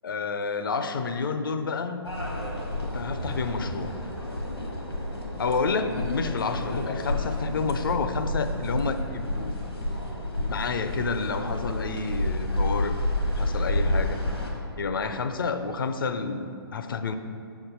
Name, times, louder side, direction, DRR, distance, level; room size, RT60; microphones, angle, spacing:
voice 1, 0.0-2.1 2.8-3.9 5.4-9.5 10.5-13.0 13.4-14.2 14.8-17.2, left 4 dB, 60° left, 9 dB, 0.5 m, -29 dB
sound 1, 2.0-14.5, left 1 dB, 90° left, 1.4 m, -30 dB
7.1 x 5.6 x 4.0 m, 2.4 s
figure-of-eight pair, 125°, 13 cm